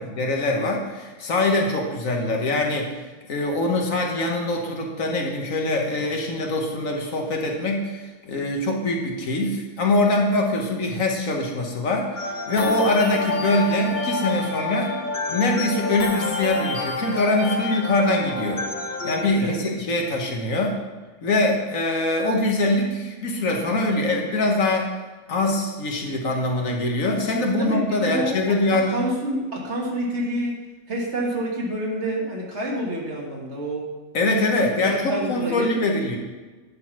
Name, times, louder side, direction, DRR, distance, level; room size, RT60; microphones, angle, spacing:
voice 1, 0.0-2.9 3.3-14.9 15.3-18.7 19.0-20.8 21.2-24.9 25.3-29.0 34.1-36.2, left 2 dB, 70° left, 1 dB, 1.5 m, -23 dB
sound 1, 12.2-19.3, left 3 dB, 40° left, 0.9 m, -28 dB
voice 2, 27.6-28.4 28.7-30.6 30.9-33.9 34.8-35.7, right 1 dB, 50° right, -2 dB, 1.8 m, -28 dB
10.0 x 4.0 x 5.9 m, 1.3 s
omnidirectional pair, 1.5 m